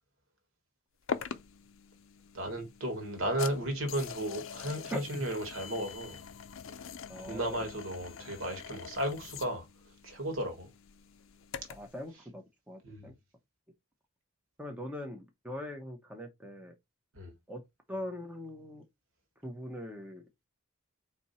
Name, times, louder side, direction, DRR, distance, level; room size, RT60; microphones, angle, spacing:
sound 1, 1.1-12.0, left 6 dB, 60° left, 0.5 m, -44 dB
voice 1, 2.3-6.2 7.3-9.6 10.0-10.7 12.8-13.1 17.1-17.3, right 1 dB, 65° right, 1.5 m, -34 dB
voice 2, 4.9-5.3 7.1-7.7 11.7-13.1 14.6-16.7 17.5-17.6 17.9-18.8 19.4-20.2, left 1 dB, 5° right, 0.6 m, -41 dB
4.3 x 2.7 x 4.1 m
head